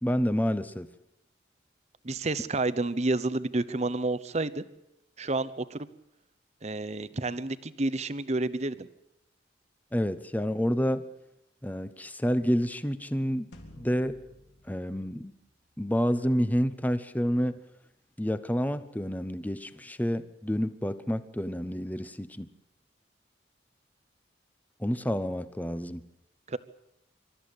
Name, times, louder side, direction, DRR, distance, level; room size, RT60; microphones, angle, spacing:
voice 1, 0.0-0.9 9.9-11.1 11.6-13.5 13.8-14.2 14.7-15.3 15.8-17.6 18.2-22.5 24.8-26.0, equal, 10° left, 13 dB, 0.9 m, -29 dB
voice 2, 2.0-4.6 5.2-5.9 6.6-8.9 26.5-26.6, right 2 dB, 40° right, 15 dB, 0.9 m, -30 dB
sound 1, 13.5-16.1, left 1 dB, 75° left, 3.8 m, -53 dB
26.0 x 13.5 x 8.7 m, 0.84 s
head